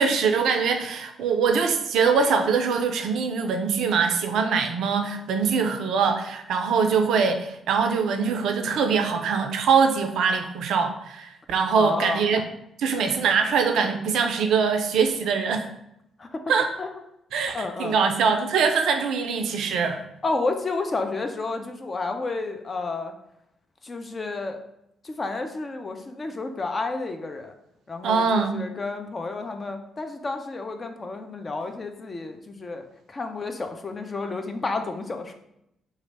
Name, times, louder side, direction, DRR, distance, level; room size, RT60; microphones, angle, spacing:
voice 1, 0.0-12.4 12.8-15.7 16.5-16.7 17.3-20.0 28.0-28.6, right 5 dB, 60° right, 6 dB, 0.4 m, -23 dB
voice 2, 11.7-12.3 16.2-16.4 16.8-16.9 17.5-18.0 20.2-23.1 23.8-24.6 25.0-27.5 27.9-35.3, left 3 dB, 35° left, 5 dB, 0.5 m, -31 dB
3.0 x 2.4 x 4.1 m, 0.80 s
figure-of-eight pair, 40°, 0 cm